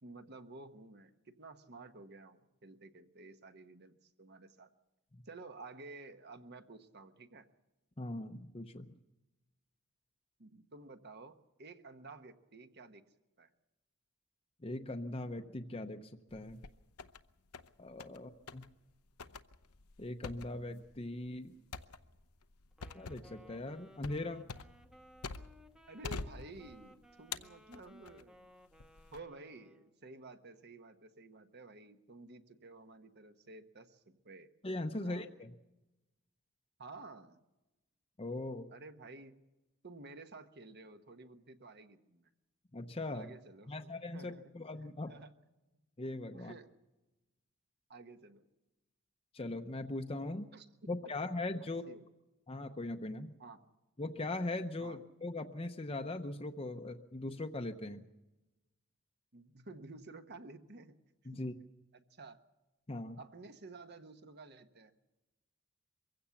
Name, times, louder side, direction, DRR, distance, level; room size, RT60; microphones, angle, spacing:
voice 1, 0.0-4.7 5.2-7.5 10.4-13.0 13.4-13.5 18.1-18.2 25.9-28.5 29.1-34.5 34.9-35.4 36.8-37.4 38.7-39.4 39.8-42.3 43.1-44.5 44.8-45.3 46.3-46.7 47.9-48.4 50.5-50.7 51.6-52.1 53.4-53.6 54.8-55.0 59.3-61.0 61.3-61.4 61.9-62.4 63.2-64.9, right 3 dB, 50° right, 8 dB, 1.2 m, -52 dB
voice 2, 8.0-8.9 14.6-16.6 17.8-18.7 20.0-21.5 22.9-24.4 34.6-35.5 38.2-38.7 42.7-43.3 43.7-45.2 46.0-46.5 49.3-50.5 50.9-51.9 52.5-53.3 54.0-58.1 61.3-61.5 62.9-63.2, left 2 dB, 25° left, 5 dB, 0.7 m, -40 dB
sound 1, 16.3-17.2 17.5-18.2 18.5-18.7 19.2-25.7 26.0-26.9 27.3-28.2 28.8-29.2, left 4 dB, 85° left, 0.8 m, -46 dB
Wind instrument woodwind instrument, 22.7-30.0, left 1 dB, 5° right, 0.9 m, -61 dB
23.5 x 16.0 x 7.1 m, 1.0 s
head